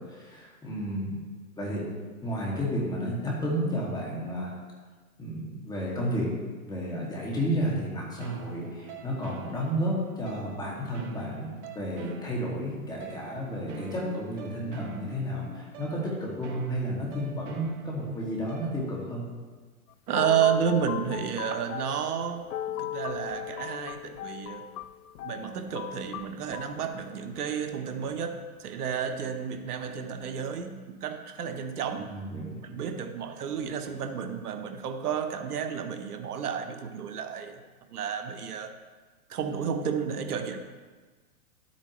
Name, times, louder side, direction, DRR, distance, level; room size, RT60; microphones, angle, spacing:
voice 1, 0.1-1.2 1.6-1.8 2.2-4.5 5.2-6.3 6.6-19.2 32.1-32.6, equal, 10° left, -4 dB, 2.3 m, -32 dB
sound 1, 8.2-19.2, right 4 dB, 50° right, 1.1 m, -46 dB
sound 2, 19.9-26.8, left 13 dB, 75° left, 0.6 m, -38 dB
voice 2, 20.1-24.7 25.2-32.1 32.6-37.6 37.9-38.7 39.3-40.6, right 7 dB, 85° right, 7 dB, 1.1 m, -31 dB
11.5 x 8.5 x 3.2 m, 1.4 s
hypercardioid pair, 140°, 45 cm